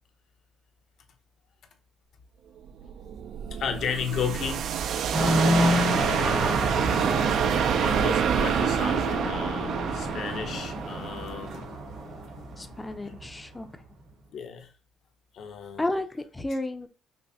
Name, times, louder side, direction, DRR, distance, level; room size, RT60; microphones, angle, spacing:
sound 1, 2.7-11.6, right 8 dB, 60° right, 0.3 m, -28 dB
voice 1, 3.5-4.7 5.2-5.9 7.7-11.7 14.3-14.7 15.3-15.9, left 7 dB, 60° left, 0.7 m, -34 dB
sound 2, 5.1-13.4, right 1 dB, 85° right, 2.1 m, -28 dB
voice 2, 12.6-13.8 15.8-16.9, left 2 dB, 15° left, 0.5 m, -32 dB
5.3 x 2.1 x 2.7 m
cardioid pair, 120°, 0 cm